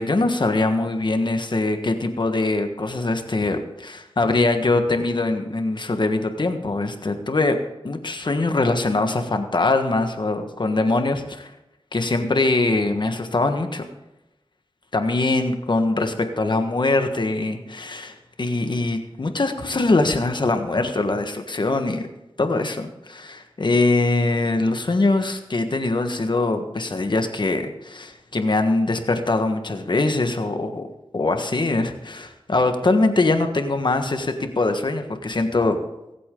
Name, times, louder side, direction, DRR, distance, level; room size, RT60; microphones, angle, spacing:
voice 1, 0.0-7.6 7.8-11.5 11.9-13.8 14.9-22.1 22.4-30.8 31.1-35.8, left 2 dB, 55° left, 6 dB, 1.4 m, -22 dB
22.5 x 8.4 x 3.8 m, 0.94 s
wide cardioid pair, 65°, 10 cm